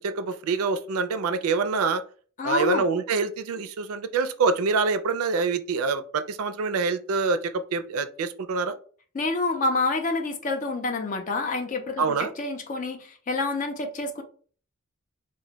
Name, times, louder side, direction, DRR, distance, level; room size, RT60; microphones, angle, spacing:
voice 1, 0.0-2.0 2.4-8.7 12.0-12.3, right 4 dB, 80° right, 0.4 m, -26 dB
voice 2, 2.4-2.9 9.1-14.2, left 3 dB, 35° left, 0.4 m, -28 dB
2.1 x 2.1 x 3.8 m
head